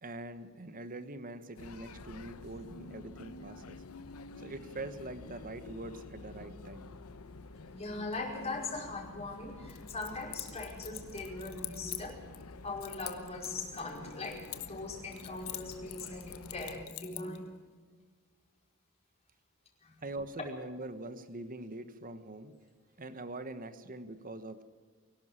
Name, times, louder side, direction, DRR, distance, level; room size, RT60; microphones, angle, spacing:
voice 1, 0.0-3.8 4.3-6.9 20.0-22.5 23.0-24.6, right 2 dB, 40° right, 11 dB, 1.3 m, -43 dB
sound 1, 1.6-16.9, left 3 dB, 85° left, 0.9 m, -49 dB
voice 2, 7.7-12.2 12.6-17.5 19.8-20.0, left 3 dB, 30° left, -1 dB, 5.1 m, -40 dB
Keys jangling, 9.7-12.4 12.8-14.9 15.1-17.4, left 15 dB, 70° left, 1.2 m, -44 dB
23.0 x 12.0 x 9.8 m, 1.5 s
head